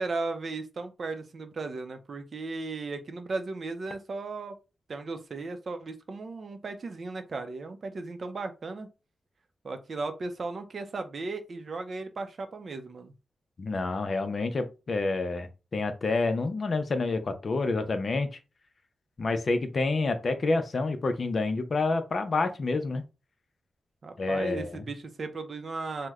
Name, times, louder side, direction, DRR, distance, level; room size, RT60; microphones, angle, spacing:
voice 1, 0.0-4.5 4.9-8.9 9.6-13.1 24.0-26.1, right 3 dB, 55° right, 0.5 m, -36 dB
voice 2, 13.6-18.4 19.2-23.0 24.2-24.8, left 3 dB, 50° left, 0.5 m, -28 dB
3.0 x 2.1 x 3.5 m
wide cardioid pair, 100°, 0 cm